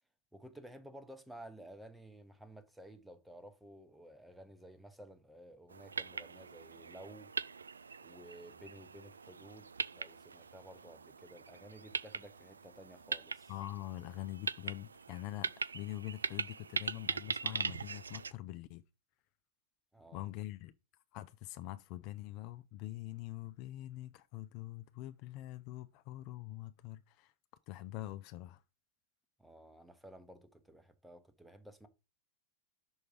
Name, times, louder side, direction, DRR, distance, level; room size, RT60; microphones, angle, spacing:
voice 1, 0.3-7.3 8.0-13.5 19.9-20.3 29.4-31.9, right 1 dB, 5° right, 0.9 m, -54 dB
sound 1, 5.7-18.3, right 5 dB, 75° right, 0.3 m, -41 dB
voice 2, 13.5-18.8 20.1-20.7 21.1-27.3 27.7-28.6, left 15 dB, 45° left, 0.4 m, -44 dB
6.3 x 4.5 x 5.0 m
figure-of-eight pair, 90°, 0 cm